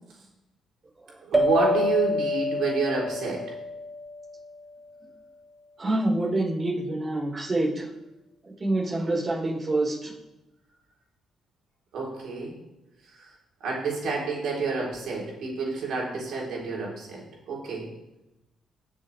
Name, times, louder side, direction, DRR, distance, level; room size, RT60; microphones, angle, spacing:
voice 1, 1.2-3.4 11.9-12.5 13.2-13.3 13.6-17.9, right 4 dB, 70° right, -3 dB, 4.1 m, -29 dB
sound 1, 1.3-4.3, left 1 dB, 20° right, 1.6 m, -26 dB
voice 2, 5.8-7.9 8.6-10.1, right 2 dB, 35° right, -4 dB, 5.0 m, -26 dB
18.5 x 7.1 x 3.5 m, 0.96 s
cardioid pair, 90°, 0 cm